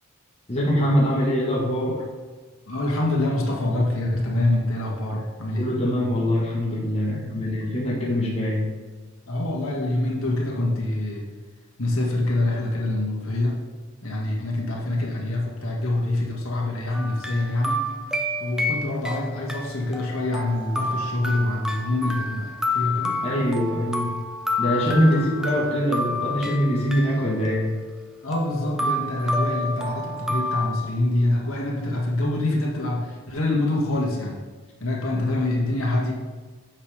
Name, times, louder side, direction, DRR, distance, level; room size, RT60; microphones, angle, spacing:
voice 1, 0.5-2.0 5.5-8.7 23.2-24.1 24.6-27.7, equal, 25° left, -4 dB, 1.3 m, -23 dB
voice 2, 2.7-5.7 9.3-11.3 11.8-13.6 14.0-17.8 18.4-23.2 24.8-25.4 25.9-26.2 28.2-34.4 34.8-36.1, left 1 dB, 70° left, -2 dB, 1.9 m, -25 dB
sound 1, 16.9-19.2 19.5-30.7, left 1 dB, 5° right, 0.5 m, -29 dB
9.6 x 6.9 x 3.4 m, 1.4 s
head